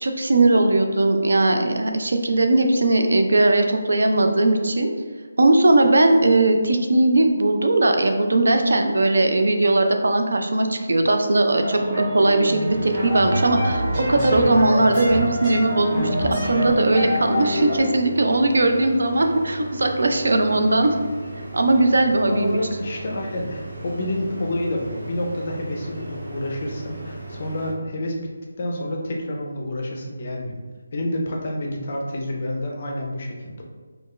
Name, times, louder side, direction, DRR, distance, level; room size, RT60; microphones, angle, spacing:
voice 1, 0.0-4.9 5.4-20.9 21.5-22.6, right 2 dB, 70° right, 5 dB, 0.4 m, -19 dB
sound 1, 11.6-17.8, equal, 15° right, 0.9 m, -26 dB
sound 2, 12.7-27.7, right 1 dB, 85° right, 1.4 m, -37 dB
voice 2, 22.3-28.2 28.6-30.6 30.9-33.6, left 1 dB, 30° left, 0 dB, 0.4 m, -28 dB
4.4 x 2.3 x 3.0 m, 1.5 s
hypercardioid pair, 180°, 0 cm